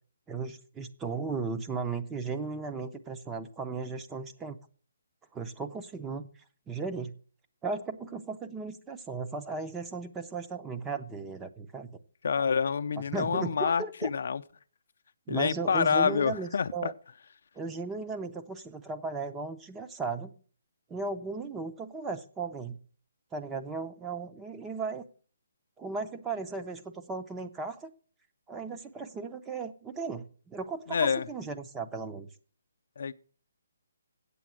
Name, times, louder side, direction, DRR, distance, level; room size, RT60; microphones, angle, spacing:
voice 1, 0.3-4.6 5.3-6.3 6.7-7.1 7.6-11.9 13.1-14.1 15.3-16.9 17.6-20.3 20.9-22.8 23.3-25.0 25.8-27.9 28.5-32.3, right 4 dB, 10° right, 0.6 m, -36 dB
voice 2, 12.2-14.4 15.3-16.9 30.9-31.3 33.0-33.1, left 6 dB, 60° left, 0.5 m, -27 dB
8.4 x 7.5 x 7.4 m
hypercardioid pair, 165°, 0 cm